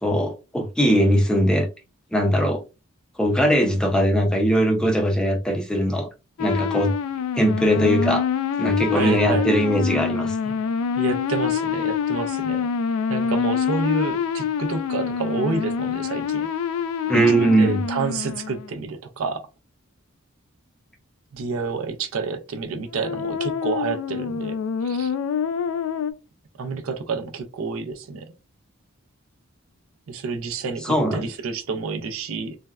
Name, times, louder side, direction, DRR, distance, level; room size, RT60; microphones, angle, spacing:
voice 1, 0.0-1.7 2.1-2.6 3.2-6.1 6.4-6.9 7.4-8.2 8.6-10.6 17.1-17.8 30.8-31.3, equal, 5° left, 0.4 m, -20 dB
sound 1, 6.4-18.7 22.9-26.1, left 7 dB, 85° left, 0.3 m, -26 dB
voice 2, 8.9-9.5 11.0-12.6 13.1-16.5 17.1-19.4 21.3-24.6 24.8-25.1 26.6-28.3 30.1-32.6, right 4 dB, 75° right, 0.4 m, -29 dB
3.3 x 2.1 x 2.2 m
head